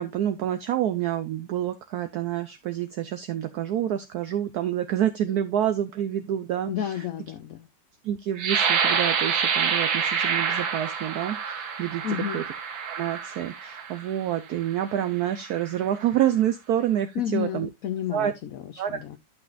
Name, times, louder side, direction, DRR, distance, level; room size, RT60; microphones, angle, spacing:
voice 1, 0.0-7.1 8.0-12.0 12.3-12.4 12.9-17.7 18.1-18.3 18.8-19.2, right 11 dB, 70° right, 1.0 m, -28 dB
voice 2, 6.7-7.7 12.0-12.4 17.2-19.2, left 9 dB, 65° left, 0.9 m, -31 dB
sound 1, 8.4-14.0 14.7-14.8 15.3-15.8, right 6 dB, 90° right, 2.0 m, -27 dB
11.5 x 6.0 x 2.5 m
omnidirectional pair, 2.0 m